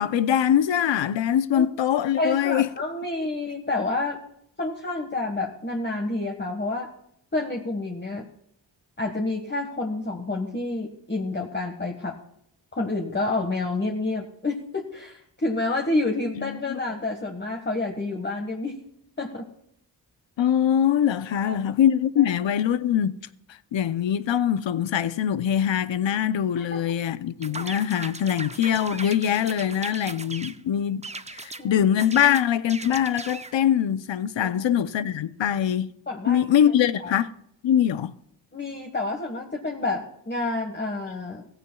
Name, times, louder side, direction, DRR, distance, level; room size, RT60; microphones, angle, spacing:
voice 1, 0.0-2.7 16.4-16.8 20.4-23.1 23.7-31.0 31.4-35.9 36.3-37.3 37.6-38.1, left 9 dB, 80° left, 0.7 m, -23 dB
voice 2, 2.2-4.2 4.6-6.9 7.3-8.3 9.0-12.1 12.7-18.8 19.2-19.5 21.3-21.8 22.2-22.3 26.5-26.8 31.6-31.8 34.4-34.7 36.1-36.4 37.0-37.2 38.5-41.5, left 2 dB, 25° left, 1.6 m, -29 dB
sound 1, 27.4-30.6 31.0-31.6 32.0-33.6, right 3 dB, 15° right, 0.5 m, -38 dB
16.5 x 15.5 x 2.3 m
cardioid pair, 70°, 45 cm